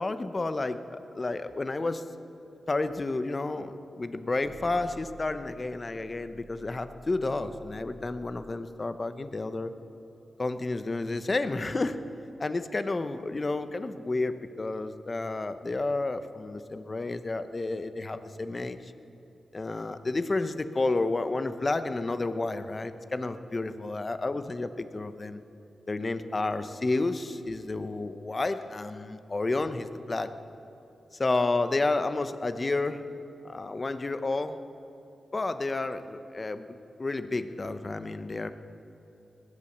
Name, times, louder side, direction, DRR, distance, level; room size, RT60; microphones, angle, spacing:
voice 1, 0.0-2.0 2.7-9.7 10.4-12.0 12.4-18.9 19.5-25.4 25.9-30.3 31.1-33.1 33.4-34.6 35.3-38.5, left 2 dB, 40° left, 11 dB, 0.9 m, -31 dB
sound 1, 4.4-8.5, equal, 15° right, 1.6 m, -51 dB
19.5 x 8.6 x 7.3 m, 2.9 s
cardioid pair, 55°, 0 cm